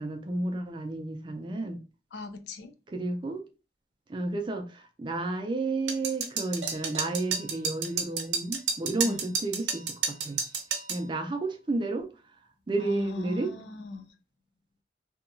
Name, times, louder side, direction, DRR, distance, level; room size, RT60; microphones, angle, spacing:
voice 1, 0.0-1.8 2.9-3.5 4.1-10.4 10.9-12.1 12.7-13.5, right 2 dB, 25° right, 0.3 m, -32 dB
voice 2, 2.1-2.7 9.0-9.3 12.8-14.1, left 3 dB, 65° left, 0.4 m, -38 dB
sound 1, 5.9-11.0, right 6 dB, 75° right, 0.6 m, -30 dB
2.8 x 2.2 x 2.5 m
head